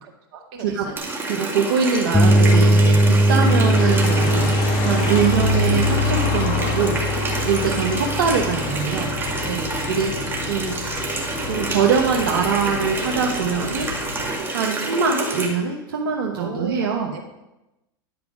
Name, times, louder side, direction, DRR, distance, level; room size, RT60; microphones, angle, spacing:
voice 1, 0.0-1.1 7.6-7.8 9.4-9.7 16.4-17.2, right 5 dB, 60° right, 2 dB, 1.7 m, -35 dB
Water tap faucet, 1.0-15.5, right 2 dB, 20° right, 2.0 m, -28 dB
voice 2, 1.3-4.5 4.8-7.0 7.4-9.1 9.9-10.1 10.5-10.8 11.5-13.9 14.5-17.1, right 6 dB, 75° right, 0 dB, 1.0 m, -23 dB
sound 1, 2.1-9.9, right 1 dB, 10° left, 0.7 m, -20 dB
sound 2, 3.4-14.3, left 4 dB, 50° left, 1.6 m, -28 dB
10.5 x 4.8 x 5.0 m, 0.97 s
hypercardioid pair, 100°, 12 cm